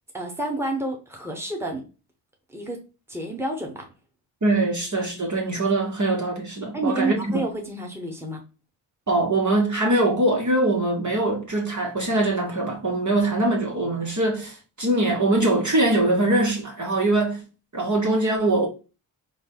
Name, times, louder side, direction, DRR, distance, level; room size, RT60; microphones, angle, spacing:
voice 1, 0.1-1.8 2.5-2.8 3.1-3.9 6.7-8.4, right 2 dB, 5° right, 1.2 m, -29 dB
voice 2, 4.4-7.4 9.1-17.4 17.7-18.7, right 2 dB, 40° right, 1.1 m, -22 dB
3.9 x 2.2 x 3.7 m
cardioid pair, 40°, 47 cm